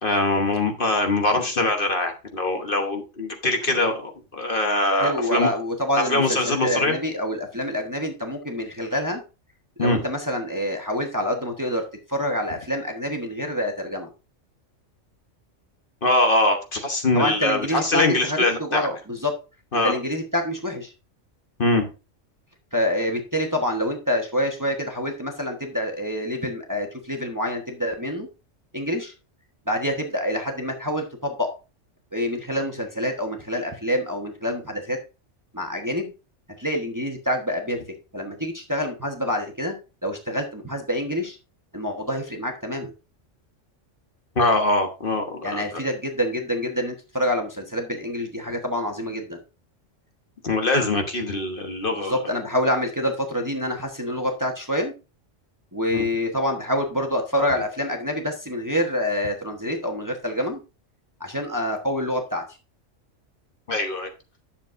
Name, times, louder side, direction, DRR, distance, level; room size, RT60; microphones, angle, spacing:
voice 1, 0.0-5.5 6.1-7.0 9.8-10.0 16.0-18.9 19.7-19.9 21.6-21.9 44.3-45.6 50.4-52.2 63.7-64.1, left 2 dB, 45° left, 4 dB, 1.3 m, -22 dB
voice 2, 5.0-9.2 9.8-11.8 12.1-14.1 17.1-19.3 19.8-20.9 22.7-28.3 28.7-29.1 29.7-31.5 32.1-35.0 35.5-36.1 36.6-37.8 38.1-39.7 40.0-41.4 41.7-42.9 45.4-49.4 51.9-54.9 55.7-60.6 61.2-62.4, equal, 15° right, 3 dB, 1.1 m, -27 dB
10.5 x 7.1 x 2.6 m, 0.31 s
omnidirectional pair, 1.3 m